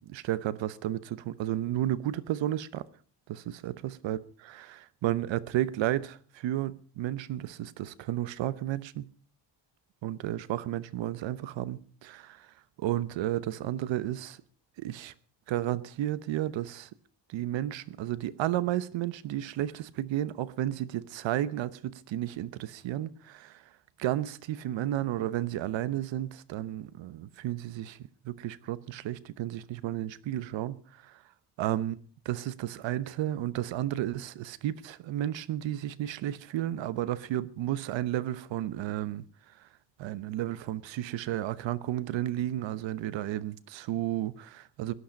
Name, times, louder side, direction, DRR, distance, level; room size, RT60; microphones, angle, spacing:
voice 1, 0.1-2.8 3.3-9.1 10.0-12.5 12.8-14.4 14.8-15.1 15.5-16.9 17.3-23.6 24.0-28.0 28.2-31.1 31.6-32.0 32.2-39.2 40.0-44.9, right 13 dB, 80° right, 1.0 m, -32 dB
18.0 x 11.5 x 5.2 m
cardioid pair, 135°, 44 cm